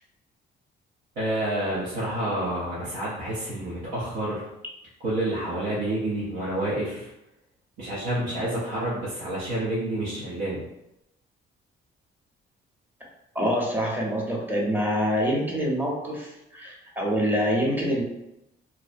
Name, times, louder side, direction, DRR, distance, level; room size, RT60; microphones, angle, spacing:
voice 1, 1.2-4.5 5.0-7.1 7.8-10.7, right 1 dB, 85° right, -8 dB, 0.7 m, -29 dB
voice 2, 13.3-18.0, equal, 10° right, -3 dB, 0.7 m, -26 dB
2.6 x 2.0 x 2.5 m, 0.86 s
cardioid pair, 90°, 20 cm